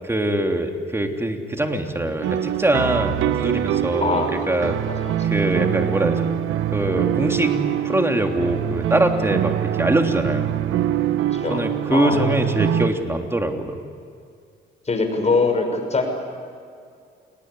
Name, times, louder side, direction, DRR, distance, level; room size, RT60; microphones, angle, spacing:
voice 1, 0.0-4.8 5.2-6.3 6.7-7.5 7.8-10.6 11.5-13.8, right 1 dB, 10° right, 3 dB, 3.3 m, -23 dB
sound 1, 2.2-12.9, right 11 dB, 90° right, 1.1 m, -24 dB
voice 2, 4.0-4.3 4.9-5.2 8.4-8.5 11.3-11.6 11.9-12.2 14.9-16.1, left 3 dB, 35° left, 5 dB, 6.2 m, -23 dB
29.0 x 19.5 x 9.8 m, 2.3 s
cardioid pair, 90°, 20 cm